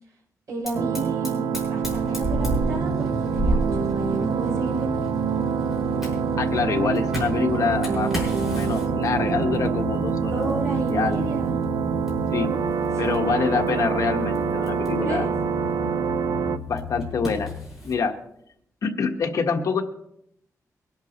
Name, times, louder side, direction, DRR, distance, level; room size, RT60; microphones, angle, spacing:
voice 1, 0.5-5.1 10.2-11.6 12.9-13.5 14.9-15.3, right 3 dB, 55° right, -3 dB, 7.3 m, -33 dB
Fire, 0.6-18.0, right 1 dB, 5° right, 5.5 m, -35 dB
sound 1, 0.7-16.6, right 7 dB, 80° right, 0.7 m, -26 dB
sound 2, 2.5-17.7, left 6 dB, 35° left, 2.0 m, -36 dB
voice 2, 6.4-8.1 8.4-11.2 12.3-12.5 13.0-15.3 16.7-17.5 17.8-18.1 18.8-19.8, left 5 dB, 65° left, 4 dB, 1.4 m, -26 dB
22.5 x 11.5 x 3.0 m, 0.73 s
wide cardioid pair, 160°, 6 cm